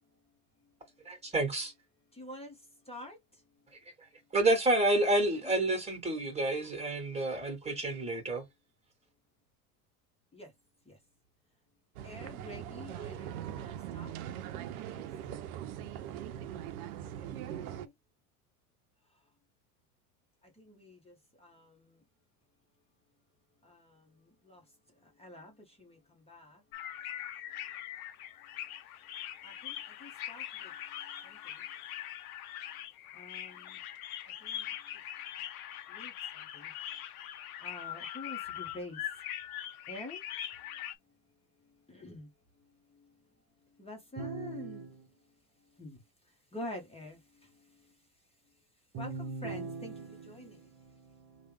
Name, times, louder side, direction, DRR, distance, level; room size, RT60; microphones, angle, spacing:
voice 1, 1.0-1.7 4.3-8.4, right 2 dB, 15° right, 1.7 m, -29 dB
voice 2, 2.1-2.6 2.9-3.2 5.1-5.5 10.3-10.5 10.8-11.0 12.0-14.2 14.9-15.1 17.2-17.9 20.6-22.0 23.6-24.6 25.0-26.6 29.4-30.7 31.1-31.7 33.1-33.8 34.2-34.7 35.9-36.7 37.6-39.0 39.9-40.2 41.9-42.3 42.9-43.1 43.8-44.8 45.8-46.0 46.5-47.9 49.0-49.9 50.3-50.7, left 1 dB, 15° left, 1.2 m, -48 dB
sound 1, 12.0-17.9, right 10 dB, 70° right, 0.6 m, -41 dB
sound 2, 26.7-41.0, left 11 dB, 70° left, 0.7 m, -42 dB
voice 3, 44.2-45.1 48.9-51.5, right 4 dB, 35° right, 1.0 m, -42 dB
3.2 x 2.4 x 3.3 m
hypercardioid pair, 85°, 44 cm